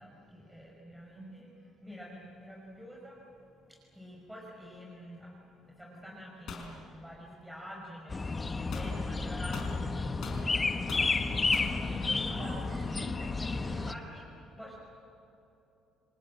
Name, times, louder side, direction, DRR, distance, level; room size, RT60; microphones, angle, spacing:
voice 1, 0.0-1.5 1.8-12.5 13.7-14.7, equal, ahead, -3 dB, 5.6 m, -48 dB
voice 2, 1.1-1.5 12.0-14.2, right 2 dB, 55° right, 3 dB, 7.3 m, -47 dB
sound 1, 6.5-6.7 8.7-8.9 9.5-10.5 10.9-11.1 11.5-11.8, left 5 dB, 60° left, 5.6 m, -42 dB
sound 2, 8.1-13.9, left 3 dB, 25° left, 1.3 m, -31 dB
29.0 x 19.5 x 8.8 m, 2.9 s
supercardioid pair, 75°, 0 cm